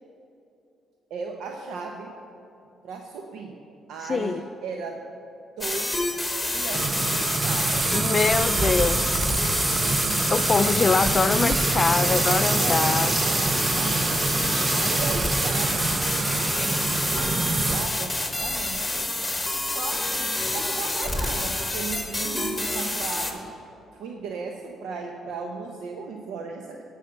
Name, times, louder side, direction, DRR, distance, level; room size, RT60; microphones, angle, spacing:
voice 1, 1.1-2.2 2.8-3.6 3.9-5.0 5.6-6.0 6.5-7.9 9.7-10.4 12.6-14.2 14.7-16.8 17.1-17.4 17.7-19.1 19.6-23.5 23.9-26.8, right 5 dB, 80° right, 3 dB, 0.7 m, -36 dB
voice 2, 4.1-4.4 7.9-9.3 10.3-13.2, left 4 dB, 35° left, 14 dB, 0.4 m, -24 dB
sound 1, 5.6-23.3, left 2 dB, 10° left, 1.3 m, -28 dB
sound 2, 6.7-17.9, right 3 dB, 30° right, 0.6 m, -25 dB
12.0 x 6.5 x 6.7 m, 2.8 s
cardioid pair, 90°, 0 cm